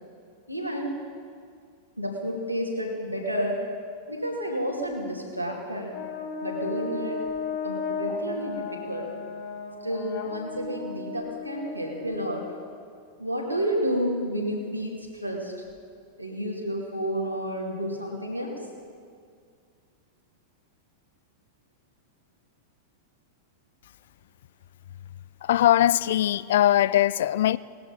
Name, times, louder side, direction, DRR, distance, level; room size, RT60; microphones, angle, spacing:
voice 1, 0.5-0.9 2.0-3.6 4.1-5.9 6.4-7.3 7.6-9.1 9.8-12.5 13.2-15.5 16.2-18.6, equal, 90° right, 2.4 m, -30 dB
Brass instrument, 5.9-12.6, left 4 dB, 40° left, 2.0 m, -35 dB
voice 2, 25.4-27.6, left 12 dB, 60° left, 0.3 m, -21 dB
19.0 x 13.0 x 4.1 m
figure-of-eight pair, 90°, 0 cm